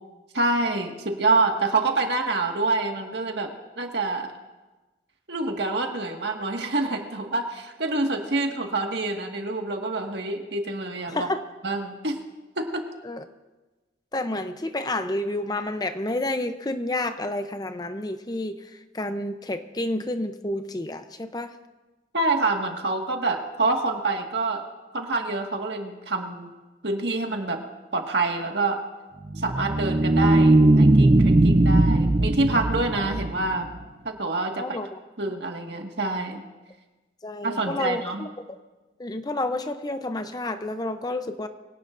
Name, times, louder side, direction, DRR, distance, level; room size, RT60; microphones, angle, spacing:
voice 1, 0.3-4.3 5.3-11.3 11.6-12.2 12.6-12.8 22.1-24.6 24.9-26.5 26.8-27.6 27.9-28.8 29.4-33.7 34.0-34.8 35.2-36.4 37.4-38.3, right 3 dB, 70° right, 2 dB, 1.8 m, -26 dB
voice 2, 11.1-11.4 13.0-13.2 14.1-18.6 18.9-21.5 34.6-34.9 37.2-38.3 39.0-41.5, left 2 dB, 20° left, 9 dB, 0.6 m, -29 dB
sound 1, 29.2-33.8, right 2 dB, 35° right, 0.6 m, -19 dB
24.0 x 17.5 x 2.6 m, 1.2 s
head